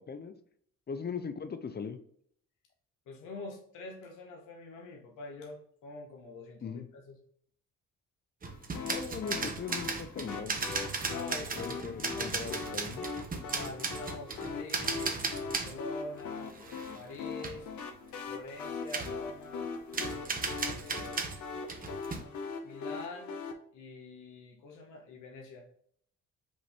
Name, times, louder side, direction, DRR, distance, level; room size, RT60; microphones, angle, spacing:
voice 1, 0.9-2.0 6.6-6.9 8.8-10.6 11.6-13.1, left 6 dB, 35° left, 10 dB, 0.6 m, -39 dB
voice 2, 3.1-7.2 11.1-12.4 13.5-16.5 16.9-17.7 18.3-19.7 20.0-21.2 22.6-23.3 23.7-25.7, left 2 dB, 90° left, 1 dB, 1.2 m, -45 dB
sound 1, 8.4-15.8 16.2-17.2 17.4-17.6 18.9-19.2 19.9-22.2, right 4 dB, 30° right, 0.9 m, -36 dB
sound 2, 8.7-23.5, left 4 dB, 70° left, 0.9 m, -41 dB
5.3 x 2.7 x 3.4 m, 0.63 s
cardioid pair, 90°, 30 cm